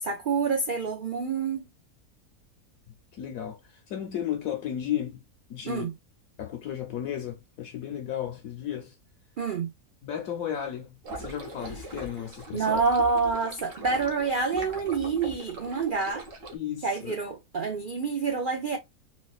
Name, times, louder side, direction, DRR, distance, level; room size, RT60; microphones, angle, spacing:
voice 1, 0.0-1.6 5.7-5.9 9.4-9.7 12.5-16.2 16.8-18.8, right 4 dB, 85° right, 0.4 m, -27 dB
voice 2, 2.9-5.2 5.5-5.9 6.4-8.9 10.0-12.8 16.5-17.2, left 10 dB, 70° left, 1.0 m, -34 dB
sound 1, 11.0-16.5, right 1 dB, 60° right, 1.3 m, -41 dB
4.1 x 2.3 x 2.3 m
omnidirectional pair, 1.6 m